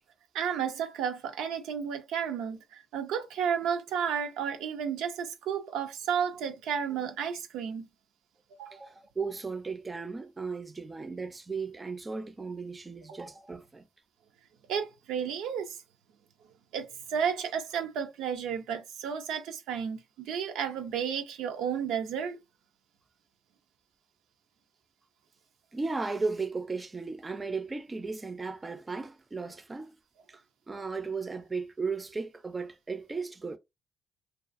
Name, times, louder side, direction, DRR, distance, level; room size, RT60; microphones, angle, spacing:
voice 1, 0.3-7.9 8.6-8.8 14.7-15.8 16.7-22.4, right 7 dB, 90° right, 0.5 m, -32 dB
voice 2, 8.7-13.9 25.7-29.9 30.3-33.6, right 4 dB, 25° right, 0.4 m, -36 dB
2.3 x 2.3 x 2.4 m
cardioid pair, 90°, 0 cm